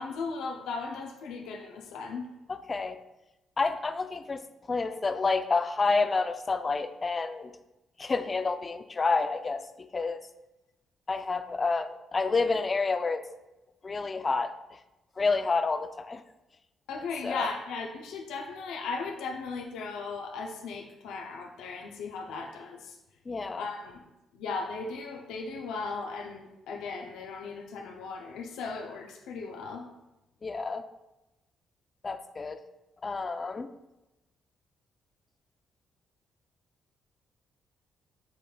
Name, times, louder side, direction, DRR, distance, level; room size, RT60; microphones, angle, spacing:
voice 1, 0.0-2.3 16.9-23.0 23.6-24.0 24.3-29.9, left 4 dB, 90° left, 2 dB, 0.5 m, -37 dB
voice 2, 2.5-3.0 3.6-4.4 4.7-7.5 8.0-10.2 11.1-13.2 13.8-14.8 15.2-16.2 17.2-17.5 23.3-23.7 30.4-30.9 32.0-32.6 33.0-33.7, left 4 dB, 30° left, 10 dB, 0.3 m, -29 dB
7.3 x 3.2 x 2.3 m, 0.97 s
cardioid pair, 90°, 0 cm